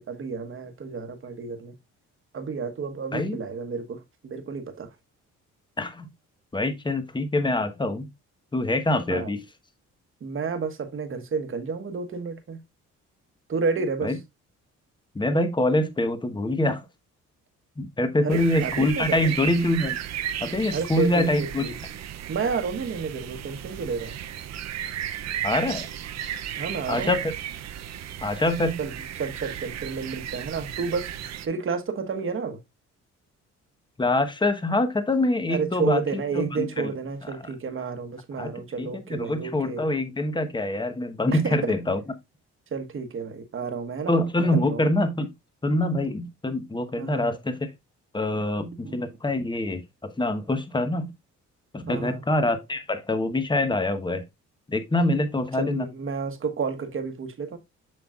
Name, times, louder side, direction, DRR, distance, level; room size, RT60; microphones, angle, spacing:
voice 1, 0.0-1.7 2.3-4.9 9.1-9.3 10.2-12.6 13.5-14.2 18.2-19.3 20.7-21.8 22.3-24.1 26.6-27.2 28.8-31.1 31.4-32.6 35.5-39.8 41.3-41.8 42.7-44.1 44.5-44.8 47.0-47.3 48.8-49.0 51.9-52.2 55.5-57.6, right 5 dB, 45° right, 1.3 m, -31 dB
voice 2, 6.5-8.1 8.5-9.4 14.0-14.1 15.1-16.8 17.8-20.0 20.4-21.6 25.4-25.9 26.9-27.2 28.2-28.8 34.0-36.0 36.4-36.9 38.4-38.5 38.8-42.0 44.1-45.3 45.6-47.7 48.1-51.1 51.7-54.2 54.7-55.9, left 1 dB, 15° left, 1.1 m, -25 dB
sound 1, 18.3-31.5, right 10 dB, 60° right, 0.7 m, -35 dB
7.6 x 5.8 x 2.4 m
cardioid pair, 90°, 30 cm